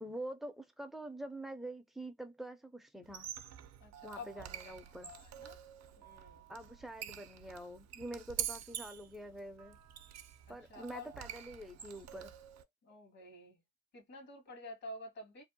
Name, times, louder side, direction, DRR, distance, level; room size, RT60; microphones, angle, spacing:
voice 1, 0.0-3.3 4.0-5.1 6.5-9.8 10.5-12.3, right 1 dB, ahead, 0.5 m, -46 dB
Squeak, 3.0-12.6, right 10 dB, 60° right, 0.5 m, -46 dB
voice 2, 3.8-4.7 5.0-5.6 6.0-6.4 10.5-11.1 12.8-13.6 13.9-15.4, left 2 dB, 55° left, 1.3 m, -50 dB
2.6 x 2.1 x 2.7 m
cardioid pair, 90°, 30 cm